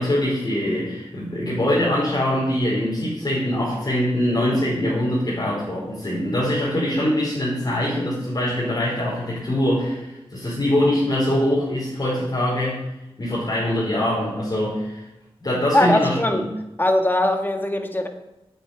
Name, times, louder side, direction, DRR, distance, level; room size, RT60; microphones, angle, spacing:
voice 1, 0.0-12.8 13.2-15.0 15.4-16.4, left 1 dB, 40° left, -8 dB, 4.6 m, -23 dB
voice 2, 15.7-16.4 16.8-18.1, left 1 dB, 20° left, 5 dB, 1.7 m, -20 dB
8.8 x 8.2 x 8.9 m, 0.94 s
wide cardioid pair, 85°, 10 cm